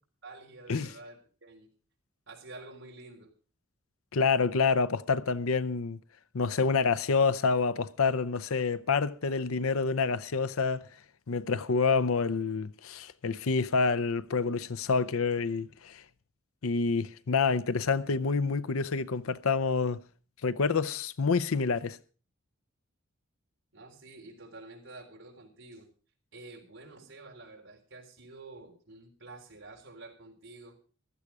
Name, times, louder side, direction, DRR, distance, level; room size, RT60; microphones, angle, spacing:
voice 1, 0.2-1.7 2.3-3.3 9.2-9.4 23.7-25.9 26.3-30.8, right 2 dB, 60° right, 3.8 m, -49 dB
voice 2, 4.1-6.0 6.3-10.8 11.3-16.0 16.6-20.0 20.4-22.0, left 4 dB, 80° left, 0.7 m, -27 dB
15.5 x 12.5 x 4.7 m
head